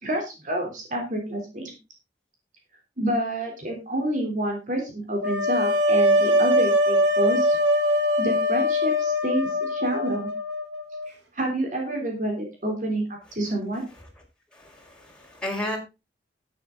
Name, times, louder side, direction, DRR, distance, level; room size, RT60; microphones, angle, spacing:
voice 1, 0.0-1.7 3.0-7.6 8.2-10.3 11.3-13.0 13.3-13.8, right 1 dB, 45° right, 2 dB, 3.5 m, -28 dB
sound 1, 5.2-11.1, left 1 dB, 85° right, 2.7 m, -22 dB
voice 2, 14.5-15.8, left 1 dB, 5° left, -1 dB, 4.9 m, -33 dB
12.0 x 9.6 x 3.9 m, 0.28 s
head